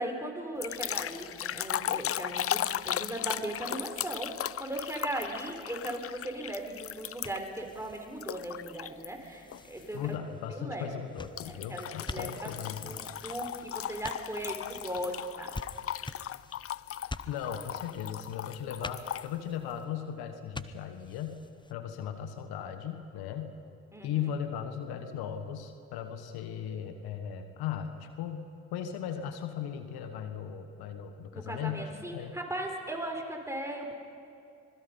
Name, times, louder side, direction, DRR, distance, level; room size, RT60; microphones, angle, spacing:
voice 1, 0.0-10.2 10.5-10.9 11.4-12.5 12.8-15.6 23.9-24.2 31.3-33.9, right 1 dB, 10° right, 2 dB, 4.5 m, -38 dB
sound 1, 0.6-7.6 8.2-9.1 9.5-9.8 11.4-19.3, left 11 dB, 40° left, 0.4 m, -37 dB
sound 2, 4.9-21.7, left 2 dB, 10° left, 0.9 m, -48 dB
voice 2, 9.9-13.0 17.3-21.4 21.7-23.5 24.0-32.3, left 9 dB, 80° left, 8 dB, 1.3 m, -37 dB
25.5 x 20.5 x 5.5 m, 2.5 s
hypercardioid pair, 45°, 37 cm